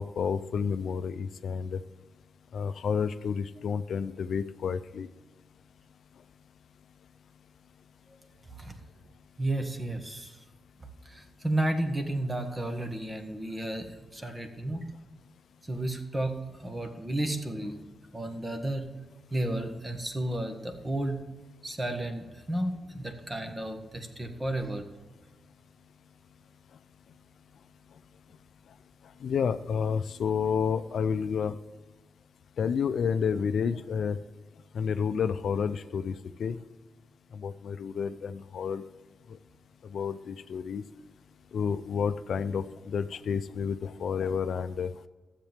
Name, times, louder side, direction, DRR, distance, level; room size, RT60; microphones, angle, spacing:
voice 1, 0.0-1.8 2.5-5.1 29.2-31.6 32.6-34.2 34.7-36.6 37.3-38.8 39.9-40.8 41.5-44.9, left 6 dB, 75° left, 12 dB, 0.4 m, -30 dB
voice 2, 9.4-10.4 11.0-14.9 15.6-18.9 19.3-21.2 21.6-24.8, right 1 dB, 20° right, 6 dB, 1.4 m, -32 dB
13.0 x 7.5 x 3.5 m, 1.2 s
cardioid pair, 105°, 0 cm